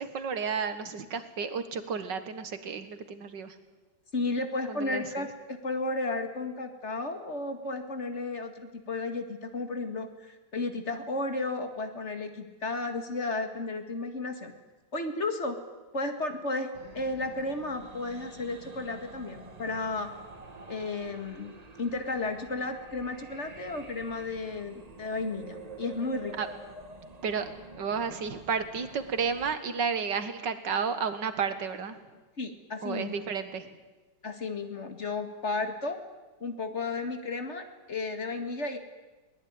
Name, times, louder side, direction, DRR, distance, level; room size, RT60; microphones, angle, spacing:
voice 1, 0.0-3.6 4.7-5.3 26.4-26.5 27.2-32.0 32.8-33.7, right 6 dB, 85° right, 10 dB, 2.3 m, -32 dB
voice 2, 4.1-14.5 14.9-15.6 15.9-16.7 16.9-20.1 20.7-26.3 32.4-33.2 34.2-36.0 36.4-38.8, left 3 dB, 40° left, 7 dB, 2.2 m, -33 dB
sound 1, 16.7-29.6, right 3 dB, 25° right, 1.5 m, -48 dB
22.0 x 20.0 x 9.6 m, 1.2 s
omnidirectional pair, 1.9 m